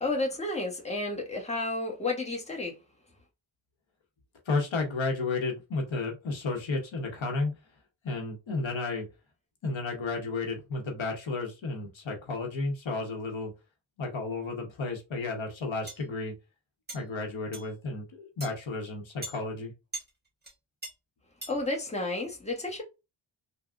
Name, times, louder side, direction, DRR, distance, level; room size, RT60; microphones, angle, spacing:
voice 1, 0.0-2.8 21.5-22.8, left 2 dB, 15° left, 1.0 m, -31 dB
voice 2, 4.5-7.5 8.0-9.1 9.6-13.5 14.0-16.3 16.9-19.7, left 3 dB, 70° left, 1.0 m, -32 dB
sound 1, 15.9-16.0 16.9-17.0 17.5-17.7 18.4-18.5 19.2-19.4 19.9-20.1 20.4-20.5 20.8-20.9 21.4-21.6, right 2 dB, 20° right, 1.2 m, -39 dB
3.5 x 2.2 x 2.4 m
wide cardioid pair, 75°, 49 cm